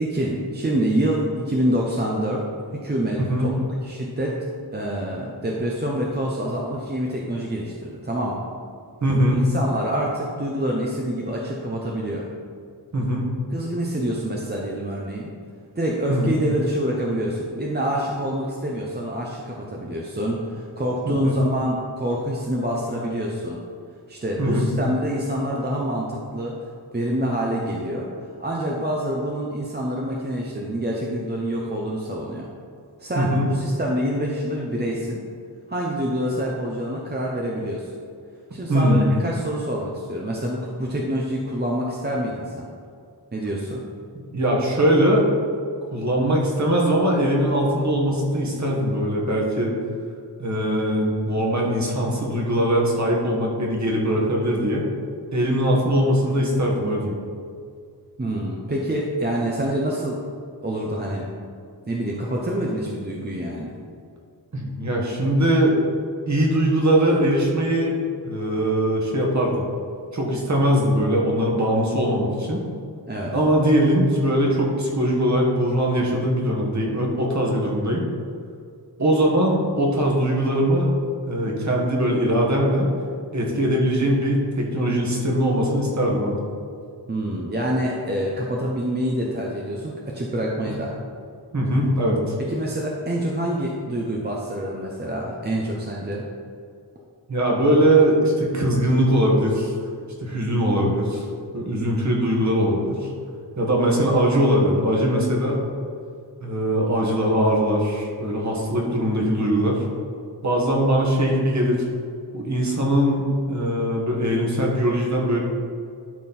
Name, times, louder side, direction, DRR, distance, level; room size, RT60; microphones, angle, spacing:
voice 1, 0.0-2.4 2.7-4.4 4.7-8.4 9.3-12.3 13.5-15.3 15.8-23.6 24.1-26.5 26.9-32.5 33.0-35.2 35.7-37.9 38.5-42.7 43.3-43.8 58.2-60.2 60.6-61.3 61.9-63.7 73.1-73.3 87.1-90.9 92.4-96.2, right 1 dB, 25° right, -3 dB, 0.8 m, -26 dB
voice 2, 9.0-9.5 12.9-13.3 16.1-16.3 21.0-21.3 24.4-24.7 33.1-33.5 38.7-39.1 44.3-45.3 45.9-49.7 50.4-54.9 55.3-57.1 64.5-65.7 66.3-68.0 68.2-69.6 70.1-72.6 73.3-78.0 79.0-80.9 81.3-82.9 83.3-86.4 91.5-92.3 97.3-99.7 100.2-101.2 101.5-103.1 103.6-105.6 106.4-109.8 110.4-111.8 112.3-115.4, equal, 40° right, -2 dB, 1.7 m, -21 dB
12.0 x 4.3 x 4.3 m, 2.2 s
wide cardioid pair, 130°, 43 cm